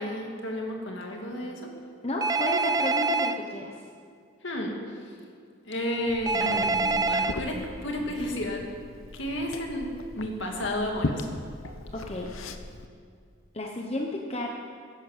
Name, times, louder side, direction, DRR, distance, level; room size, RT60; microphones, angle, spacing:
voice 1, 0.0-1.7 4.4-5.2 5.7-6.7 7.0-8.6 9.1-11.3, left 1 dB, 60° left, 1 dB, 2.2 m, -32 dB
voice 2, 2.0-3.8 11.9-12.3 13.5-14.5, left 1 dB, 30° left, 1 dB, 1.0 m, -32 dB
Telephone, 2.2-3.3 6.3-7.3, right 3 dB, 15° right, 0.4 m, -25 dB
Liquid, 6.1-12.9, left 2 dB, 80° left, 0.9 m, -38 dB
sound 1, 6.3-9.1, left 1 dB, ahead, 2.0 m, -41 dB
14.0 x 11.0 x 7.5 m, 2.3 s
head